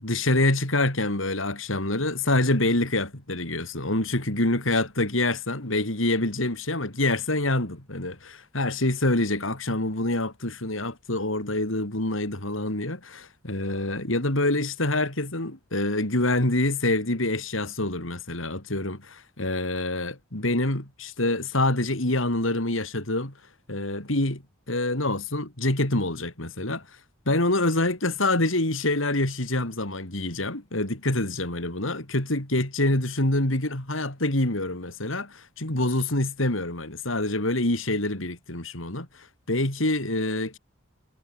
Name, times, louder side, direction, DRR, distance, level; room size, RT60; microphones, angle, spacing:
voice 1, 0.0-23.3 23.7-24.4 24.7-26.8 27.3-40.6, left 2 dB, 80° left, 4.4 m, -26 dB
head